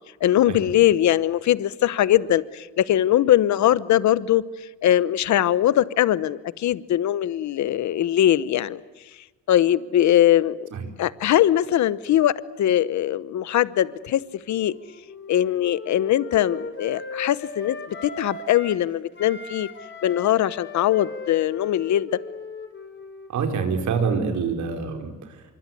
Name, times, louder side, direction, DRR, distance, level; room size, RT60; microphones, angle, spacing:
voice 1, 0.2-4.4 4.8-8.8 9.5-10.7 11.0-14.2 14.5-14.7 15.3-19.7 20.0-22.1, left 12 dB, 70° left, 17 dB, 1.0 m, -21 dB
Wind instrument woodwind instrument, 14.4-18.8 19.1-23.7, left 4 dB, 40° left, 4.0 m, -38 dB
voice 2, 23.3-25.4, right 5 dB, 70° right, 4 dB, 5.0 m, -26 dB
25.5 x 23.5 x 9.7 m, 1.2 s
cardioid pair, 90°, 30 cm